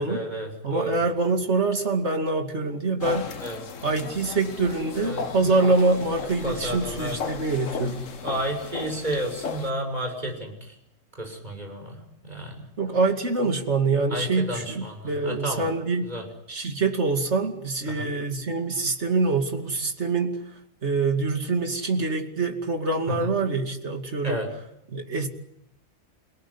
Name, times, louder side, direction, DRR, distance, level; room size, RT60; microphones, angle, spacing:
voice 1, 0.0-1.0 3.4-3.6 5.0-5.7 6.4-7.2 8.2-10.8 11.2-12.6 14.1-15.6 16.0-16.2 17.9-18.1 23.1-23.3 24.2-24.5, equal, 35° right, 2 dB, 6.6 m, -32 dB
voice 2, 0.6-3.3 3.8-8.1 12.8-16.2 16.5-20.4 20.8-24.4 24.9-25.3, right 3 dB, 60° right, 5 dB, 2.9 m, -25 dB
sound 1, 3.0-9.7, left 6 dB, 85° left, 1.7 m, -36 dB
29.0 x 18.0 x 9.9 m, 0.79 s
omnidirectional pair, 1.3 m